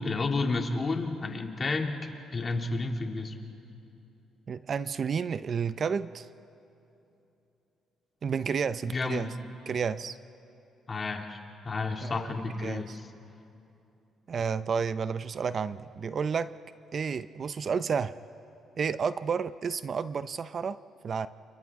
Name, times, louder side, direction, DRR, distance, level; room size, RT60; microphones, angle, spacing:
voice 1, 0.0-2.0 2.3-3.3 8.9-9.3 10.9-11.4 11.6-13.1, left 3 dB, 35° left, 2 dB, 2.3 m, -31 dB
voice 2, 4.5-6.3 8.2-9.3 9.7-10.2 12.0-12.3 12.6-13.0 14.3-16.5 16.9-18.1 18.8-21.3, right 6 dB, 50° right, 14 dB, 0.5 m, -31 dB
30.0 x 29.0 x 3.6 m, 2.9 s
cardioid pair, 90°, 0 cm